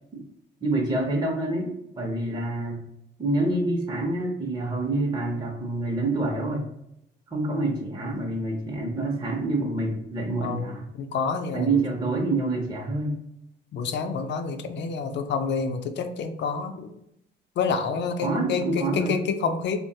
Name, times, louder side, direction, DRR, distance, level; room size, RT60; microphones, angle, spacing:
voice 1, 0.6-2.8 3.2-6.7 7.3-10.8 11.5-13.1 18.2-19.2, right 2 dB, 20° right, -1 dB, 0.6 m, -27 dB
voice 2, 10.4-11.8 13.7-16.9 17.6-19.8, left 5 dB, 65° left, 7 dB, 0.4 m, -28 dB
3.0 x 2.1 x 2.7 m, 0.81 s
cardioid pair, 90°, 20 cm